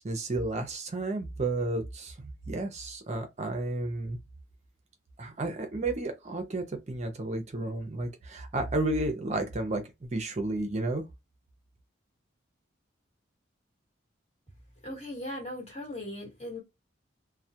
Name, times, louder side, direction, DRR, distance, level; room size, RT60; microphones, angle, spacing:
voice 1, 0.0-4.2 5.2-11.0, right 2 dB, 35° right, 0.5 m, -32 dB
voice 2, 14.8-16.6, left 1 dB, 35° left, 1.3 m, -38 dB
2.3 x 2.1 x 2.7 m
head